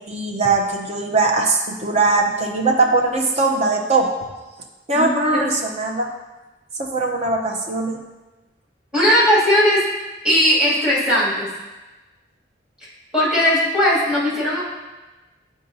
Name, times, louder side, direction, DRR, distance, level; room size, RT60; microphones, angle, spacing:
voice 1, 0.1-4.1 4.9-6.1 6.8-8.0, right 3 dB, 35° right, 1 dB, 0.7 m, -20 dB
voice 2, 8.9-9.8 10.2-11.5 13.1-14.6, equal, 5° right, -8 dB, 2.2 m, -17 dB
8.9 x 4.7 x 2.7 m, 1.1 s
head